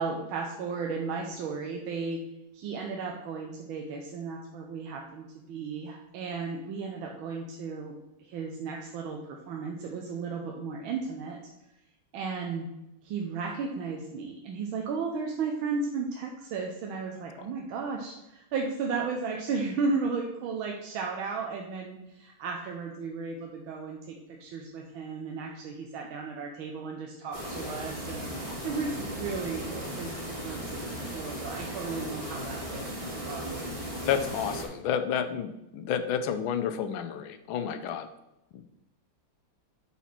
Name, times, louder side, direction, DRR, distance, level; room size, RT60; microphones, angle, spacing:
voice 1, 0.0-2.2 2.5-11.4 12.1-12.7 13.0-33.8, right 4 dB, 90° right, 1 dB, 1.5 m, -35 dB
sound 1, 27.3-34.7, equal, 20° right, 1.6 m, -37 dB
voice 2, 34.0-38.1, left 8 dB, 85° left, 9 dB, 1.4 m, -30 dB
5.9 x 4.2 x 5.8 m, 0.92 s
omnidirectional pair, 2.2 m